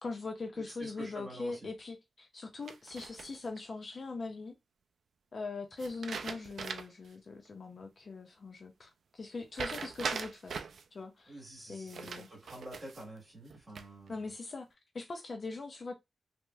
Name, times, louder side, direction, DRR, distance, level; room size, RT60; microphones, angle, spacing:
voice 1, 0.0-4.6 5.3-12.3 14.1-14.7 14.9-15.9, left 3 dB, 45° left, 0.4 m, -41 dB
voice 2, 0.8-1.6 11.3-14.2, right 1 dB, 15° right, 1.9 m, -48 dB
sound 1, 2.7-3.6 5.8-7.1 7.5-7.6 9.5-10.8 11.9-13.1 13.5-14.1, right 5 dB, 80° right, 0.3 m, -40 dB
3.0 x 2.8 x 2.2 m
wide cardioid pair, 165°, 0 cm